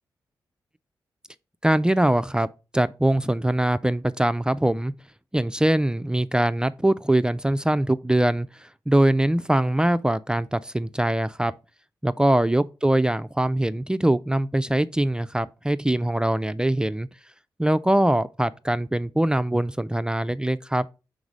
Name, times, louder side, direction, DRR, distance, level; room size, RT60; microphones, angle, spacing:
voice 1, 1.6-2.5 2.7-4.9 5.3-11.5 12.0-17.1 17.6-20.9, right 1 dB, 10° right, 0.4 m, -22 dB
4.8 x 4.0 x 5.3 m
supercardioid pair, 45°, 8 cm